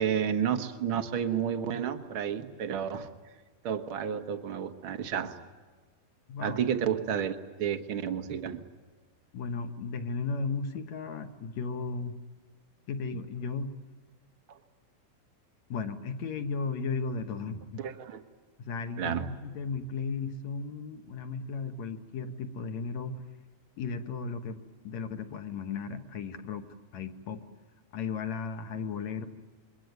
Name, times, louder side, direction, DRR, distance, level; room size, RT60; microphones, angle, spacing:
voice 1, 0.0-3.1 3.6-5.3 6.4-8.6 14.5-14.6 17.8-18.2 19.0-19.3, right 8 dB, 75° right, 8 dB, 1.2 m, -31 dB
voice 2, 6.3-6.6 9.3-12.2 12.9-13.7 15.7-17.8 18.6-23.2 23.8-24.6 24.8-26.7 26.9-27.4 27.9-29.3, left 4 dB, 60° left, 7 dB, 2.2 m, -35 dB
27.5 x 23.0 x 9.4 m, 1.4 s
omnidirectional pair, 4.3 m